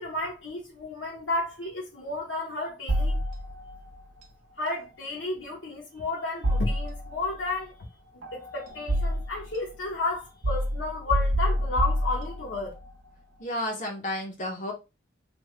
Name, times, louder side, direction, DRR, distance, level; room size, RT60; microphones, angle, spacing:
voice 1, 0.0-3.2 4.6-7.9 8.3-12.7, left 3 dB, 75° left, 0.9 m, -32 dB
sound 1, 2.9-3.8 6.4-7.3 8.2-9.5 10.4-12.7, equal, 85° right, 0.7 m, -27 dB
voice 2, 13.4-14.7, left 1 dB, 40° left, 0.6 m, -32 dB
3.4 x 2.2 x 3.2 m
head